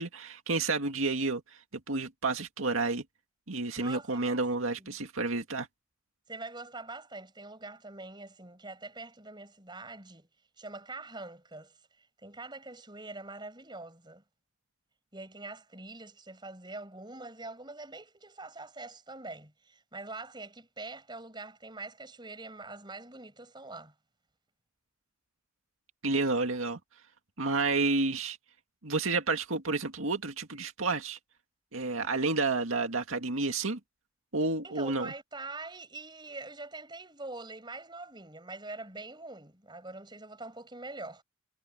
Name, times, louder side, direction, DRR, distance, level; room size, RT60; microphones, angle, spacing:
voice 1, 0.0-1.4 1.7-3.0 3.5-5.7 26.0-26.8 27.4-28.4 28.8-31.2 31.7-33.8 34.3-35.1, right 3 dB, 85° right, 2.1 m, -30 dB
voice 2, 3.8-4.4 4.8-5.0 6.3-10.3 10.6-11.7 12.2-14.2 15.1-23.9 34.6-41.2, right 2 dB, 20° right, 7.2 m, -44 dB
head